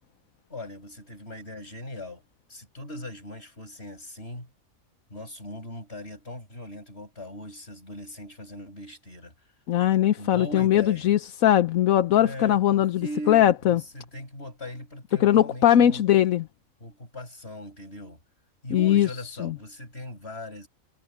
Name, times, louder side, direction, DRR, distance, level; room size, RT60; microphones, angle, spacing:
voice 1, 0.5-2.2 2.5-4.5 5.1-9.3 10.2-11.1 12.2-16.0 16.8-18.2 18.6-20.7, left 1 dB, 50° left, 7.6 m, -39 dB
voice 2, 9.7-13.8 15.2-16.4 18.7-19.1 19.4-19.5, left 11 dB, 80° left, 1.2 m, -20 dB
omnidirectional pair, 1.4 m